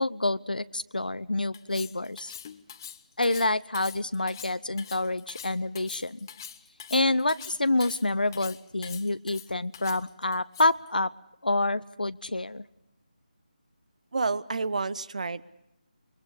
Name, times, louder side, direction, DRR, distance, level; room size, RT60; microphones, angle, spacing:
voice 1, 0.0-2.3 3.2-6.2 6.9-11.1 11.4-12.6, left 2 dB, 80° left, 14 dB, 0.7 m, -27 dB
Cutlery silverware, 1.5-10.9, left 8 dB, 25° left, 0.9 m, -44 dB
voice 2, 14.1-15.4, right 4 dB, 55° right, 18 dB, 0.9 m, -29 dB
29.5 x 23.0 x 5.0 m, 0.85 s
figure-of-eight pair, 155°, 5 cm